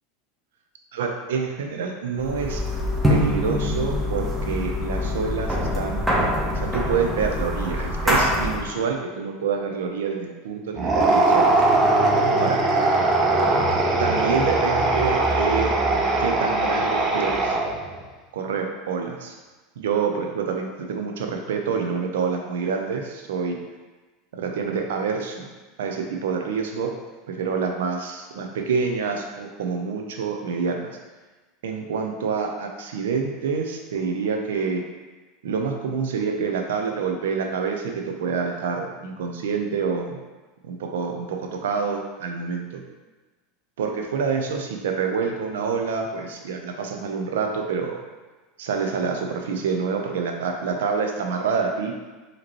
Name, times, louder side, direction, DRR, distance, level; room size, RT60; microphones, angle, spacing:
voice 1, 0.9-2.6 3.1-6.0 6.5-11.6 12.4-12.6 14.0-15.7 16.2-17.6 18.3-19.3 19.8-23.6 24.3-25.5 25.8-26.9 27.3-30.8 31.6-34.8 35.4-40.2 40.7-42.8 43.8-48.0 48.6-51.9, right 5 dB, 85° right, 3 dB, 0.5 m, -27 dB
sound 1, 2.2-8.7, left 1 dB, 5° right, 1.0 m, -24 dB
sound 2, 10.7-17.9, right 2 dB, 35° right, 0.7 m, -20 dB
5.0 x 2.9 x 3.0 m, 1.2 s
hypercardioid pair, 100°, 0 cm